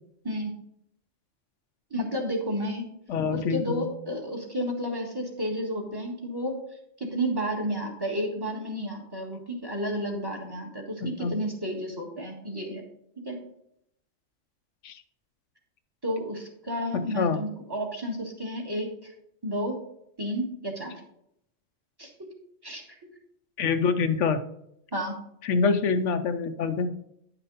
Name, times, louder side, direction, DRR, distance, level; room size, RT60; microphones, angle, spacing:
voice 1, 1.9-2.8 3.3-6.6 7.0-12.8 13.2-13.4 16.0-19.1 19.4-19.8 20.2-20.9 22.0-22.3 22.6-22.8 24.9-25.2, equal, 20° right, 1 dB, 1.6 m, -31 dB
voice 2, 3.1-3.9 11.0-11.4 14.8-14.9 16.9-17.4 23.6-24.4 25.4-26.9, left 5 dB, 70° left, 9 dB, 1.0 m, -26 dB
10.5 x 5.8 x 4.0 m, 0.75 s
omnidirectional pair, 1.3 m